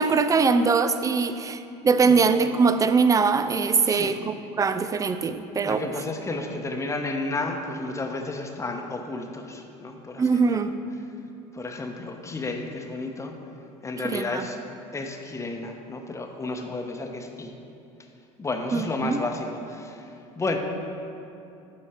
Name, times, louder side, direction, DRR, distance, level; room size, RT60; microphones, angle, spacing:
voice 1, 0.0-5.8 10.2-10.7 14.0-14.4 18.7-19.2, right 5 dB, 20° right, 11 dB, 0.4 m, -22 dB
voice 2, 3.8-4.2 5.6-10.6 11.5-13.3 13.8-14.6 14.9-17.5 18.4-20.0 20.4-20.6, left 3 dB, 20° left, 3 dB, 0.9 m, -32 dB
11.5 x 4.3 x 4.4 m, 2.7 s
supercardioid pair, 85°, 16 cm